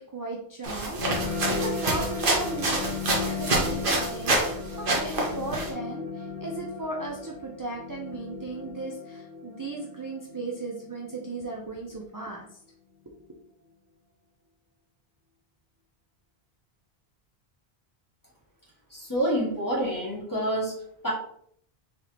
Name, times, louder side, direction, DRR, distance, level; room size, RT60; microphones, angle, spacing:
voice 1, 0.0-12.5, right 2 dB, 30° right, -1 dB, 0.4 m, -36 dB
sound 1, 0.6-4.5 4.8-5.7, right 2 dB, 60° right, 1.2 m, -27 dB
sound 2, 1.0-12.0, left 4 dB, 45° left, 1.1 m, -36 dB
voice 2, 18.9-21.1, equal, 20° left, -4 dB, 1.4 m, -28 dB
4.0 x 3.4 x 2.9 m, 0.66 s
omnidirectional pair, 1.1 m